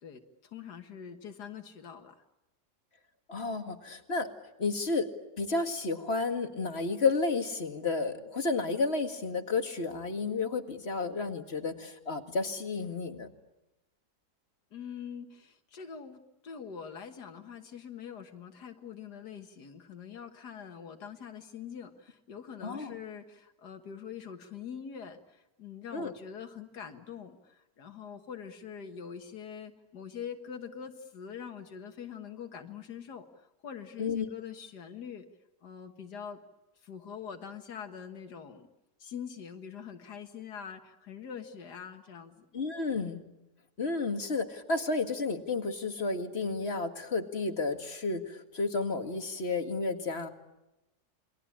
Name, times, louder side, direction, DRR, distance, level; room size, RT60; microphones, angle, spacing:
voice 1, 0.0-2.2 14.7-35.3 35.6-36.4 36.8-38.7 39.0-42.5, left 7 dB, 90° left, 5 dB, 2.0 m, -44 dB
voice 2, 3.3-4.3 4.6-5.1 5.4-13.3 22.6-23.0 25.9-26.1 34.0-34.3 42.5-43.2 43.8-50.3, left 3 dB, 40° left, 6 dB, 2.2 m, -31 dB
29.0 x 22.5 x 8.7 m, 0.97 s
omnidirectional pair, 1.7 m